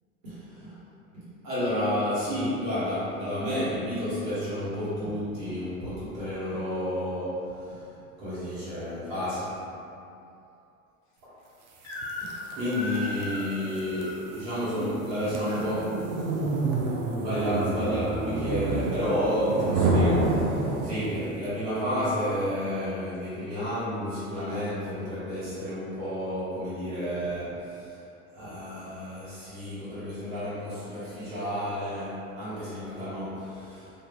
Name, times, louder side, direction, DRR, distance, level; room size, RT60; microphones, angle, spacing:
voice 1, 0.2-0.8 1.4-9.7 11.2-11.3 12.2-16.1 17.2-28.0 28.3-33.9, equal, 65° right, -13 dB, 1.2 m, -31 dB
Crying sobbing / Screech, 11.8-12.4 12.7-14.2 15.0-15.7, left 1 dB, 40° left, 0.6 m, -37 dB
sound 1, 11.9-21.3, right 2 dB, 45° right, 0.4 m, -29 dB
2.5 x 2.4 x 2.2 m, 2.7 s
figure-of-eight pair, 75°, 43 cm